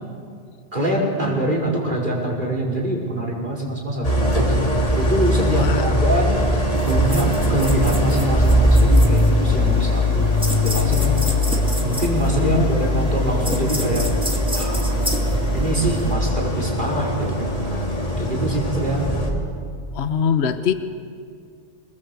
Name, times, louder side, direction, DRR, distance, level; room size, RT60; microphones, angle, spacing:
voice 1, 0.7-4.7 5.0-6.3 6.9-10.3 10.6-11.2 11.8-14.1 14.5-14.9 15.5-17.9 18.2-19.1, right 1 dB, 45° right, -2 dB, 5.5 m, -24 dB
Idling, 4.0-19.3, left 1 dB, 30° left, 3.2 m, -20 dB
voice 2, 5.5-6.0 12.4-13.4 19.9-20.7, left 7 dB, 65° left, 10 dB, 1.2 m, -24 dB
sound 1, 6.7-16.1, equal, 5° right, 2.4 m, -31 dB
27.0 x 21.0 x 8.0 m, 2.2 s
omnidirectional pair, 1.2 m